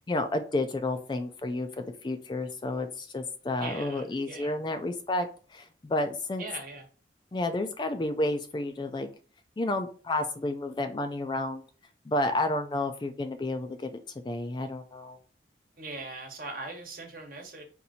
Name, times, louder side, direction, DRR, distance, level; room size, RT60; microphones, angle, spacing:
voice 1, 0.0-6.4 7.3-9.1 9.6-11.6 12.1-13.9 14.2-15.2, left 2 dB, 25° left, 8 dB, 0.3 m, -31 dB
voice 2, 3.6-4.6 6.4-6.9 15.8-17.6, right 3 dB, 50° right, 3 dB, 1.1 m, -40 dB
4.2 x 2.6 x 4.0 m, 0.40 s
head